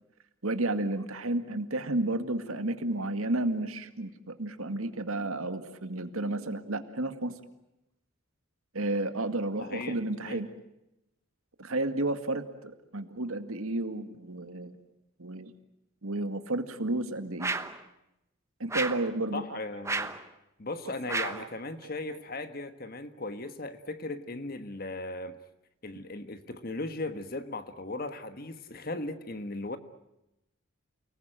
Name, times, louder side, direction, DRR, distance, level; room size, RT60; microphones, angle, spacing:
voice 1, 0.4-7.3 8.7-10.5 11.6-14.7 15.2-15.5 16.0-17.5 18.6-19.4 21.1-21.5 22.1-22.2, right 2 dB, 85° right, 2.1 m, -32 dB
voice 2, 9.6-10.0 10.2-10.4 19.3-20.1 20.6-25.4 25.8-29.8, left 2 dB, 45° left, 1.4 m, -37 dB
sound 1, 17.4-17.8 18.7-19.1 19.8-20.2 21.1-21.5, right 3 dB, 15° right, 1.0 m, -32 dB
29.5 x 19.5 x 9.0 m
head